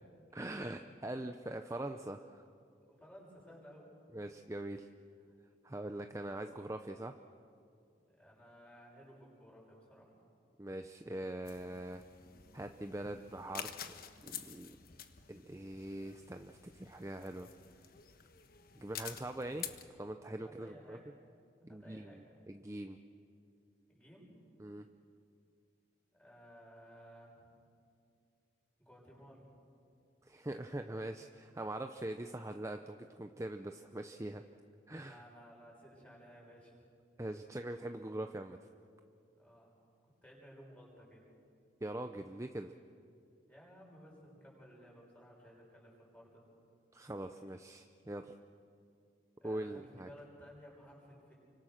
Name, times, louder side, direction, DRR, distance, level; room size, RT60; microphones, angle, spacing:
voice 1, 0.3-2.5 4.1-4.9 5.6-7.2 10.6-12.0 12.5-13.9 14.2-14.8 15.3-17.5 18.7-19.7 20.0-21.0 21.6-23.0 24.6-24.9 30.2-34.4 34.9-35.2 37.2-38.6 41.8-42.7 46.9-48.3 49.4-50.1, right 1 dB, 15° right, 7 dB, 0.6 m, -42 dB
voice 2, 2.8-3.9 8.1-10.1 20.4-21.0 21.7-22.2 23.9-24.4 26.2-27.5 28.8-29.5 35.0-36.9 39.4-39.7 40.2-41.3 43.5-46.4 49.4-51.3, equal, 10° left, -3 dB, 6.8 m, -57 dB
sound 1, 11.4-19.8, left 9 dB, 50° left, 1.3 m, -49 dB
29.5 x 25.0 x 6.6 m, 2.4 s
head